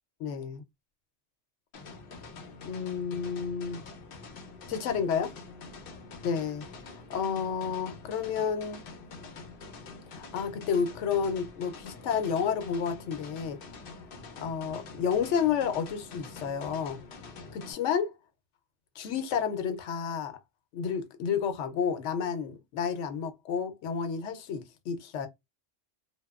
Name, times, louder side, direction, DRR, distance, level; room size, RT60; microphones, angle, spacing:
voice 1, 0.2-0.6 2.6-3.8 4.7-5.3 6.2-6.6 7.1-8.8 10.1-13.6 14.4-17.0 17.5-18.1 19.0-20.3 20.7-25.3, left 7 dB, 85° left, 0.9 m, -30 dB
sound 1, 1.7-17.7, left 4 dB, 60° left, 0.7 m, -46 dB
2.8 x 2.2 x 2.3 m
omnidirectional pair, 1.2 m